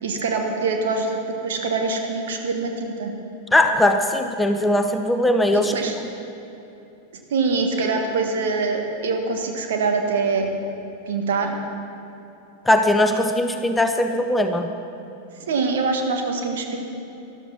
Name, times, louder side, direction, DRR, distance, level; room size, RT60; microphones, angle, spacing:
voice 1, 0.0-3.1 5.5-5.9 7.3-10.5 11.1-11.6 15.5-16.8, right 4 dB, 60° right, 4 dB, 1.6 m, -24 dB
voice 2, 3.5-5.7 12.7-14.7, left 1 dB, 10° left, 6 dB, 0.7 m, -19 dB
13.0 x 12.0 x 5.9 m, 2.9 s
figure-of-eight pair, 90°, 0 cm